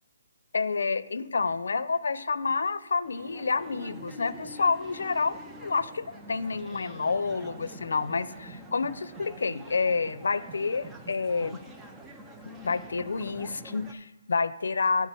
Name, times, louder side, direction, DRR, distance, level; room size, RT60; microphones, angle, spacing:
voice 1, 0.5-11.6 12.6-15.1, left 4 dB, 70° left, 15 dB, 0.5 m, -29 dB
sound 1, 3.0-13.9, right 1 dB, 5° right, 0.4 m, -46 dB
10.5 x 3.7 x 6.9 m, 1.2 s
hypercardioid pair, 180°, 0 cm